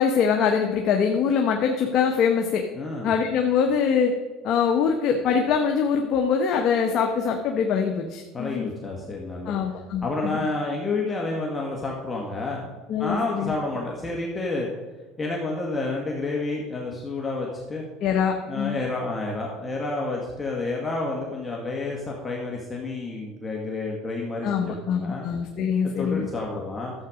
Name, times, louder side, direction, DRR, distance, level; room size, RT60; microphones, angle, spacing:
voice 1, 0.0-2.6 3.0-4.1 4.4-8.7 9.4-10.4 12.9-13.5 18.0-18.8 24.4-26.3, left 6 dB, 50° left, 3 dB, 1.2 m, -23 dB
voice 2, 2.8-3.1 8.3-9.6 10.0-14.7 15.2-17.8 18.5-25.2 25.8-26.9, left 3 dB, 20° left, -2 dB, 1.9 m, -30 dB
12.0 x 8.1 x 5.1 m, 1.2 s
supercardioid pair, 110°, 0 cm